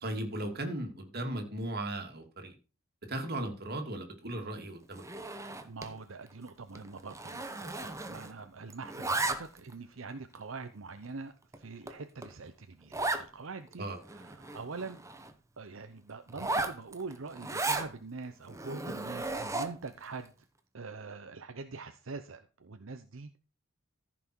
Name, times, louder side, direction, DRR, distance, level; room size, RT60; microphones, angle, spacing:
voice 1, 0.0-2.5 3.1-5.0 13.8-14.0, right 1 dB, 50° right, 4 dB, 2.5 m, -36 dB
Zipper (clothing), 4.9-6.0 6.3-6.5 6.8-8.4 8.7-9.7 10.3-10.4 11.0-11.1 11.5-11.6 11.9-12.0 12.2-12.3 12.9-13.3 13.7-13.8 14.0-15.3 16.3-17.9 18.5-19.9, right 2 dB, 15° right, 1.0 m, -35 dB
voice 2, 5.6-15.0 15.6-20.3 20.7-23.4, right 4 dB, 80° right, 8 dB, 0.8 m, -44 dB
14.5 x 6.0 x 4.6 m, 0.33 s
head